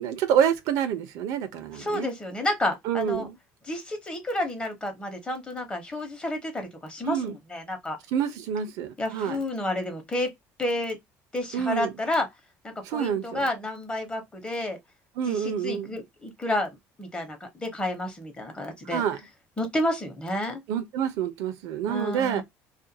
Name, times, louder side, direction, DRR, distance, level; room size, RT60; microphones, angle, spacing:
voice 1, 0.0-2.1 2.8-3.3 7.0-7.3 8.1-9.4 11.5-11.9 12.8-13.4 15.2-15.9 18.9-19.2 20.7-22.4, right 8 dB, 80° right, 0.6 m, -27 dB
voice 2, 1.8-3.3 3.7-8.0 9.0-10.3 10.6-11.0 11.3-12.3 12.6-14.8 15.3-19.0 19.6-20.6 21.9-22.4, left 1 dB, 15° left, 0.9 m, -30 dB
2.5 x 2.2 x 2.7 m
cardioid pair, 120°, 6 cm